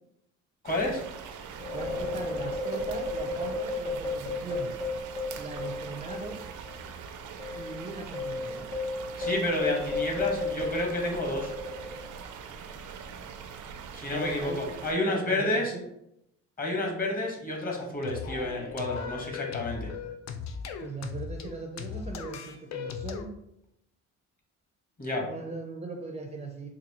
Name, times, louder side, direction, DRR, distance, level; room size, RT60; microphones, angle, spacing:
voice 1, 0.6-1.0 9.2-11.5 13.9-15.7 16.6-19.9 25.0-25.3, left 2 dB, 30° left, 0 dB, 1.1 m, -30 dB
sound 1, 0.6-14.9, right 6 dB, 75° right, 0.5 m, -43 dB
sound 2, 1.6-6.4 6.6-6.8 7.4-12.2, left 2 dB, 80° left, 1.3 m, -33 dB
voice 2, 1.7-4.7 5.4-6.4 7.5-8.7 14.1-15.9 20.8-23.3 25.2-26.7, right 3 dB, 20° right, 2 dB, 0.5 m, -39 dB
sound 3, 18.0-23.2, left 6 dB, 65° left, 0.5 m, -37 dB
4.1 x 2.5 x 2.8 m, 0.79 s
cardioid pair, 90°, 30 cm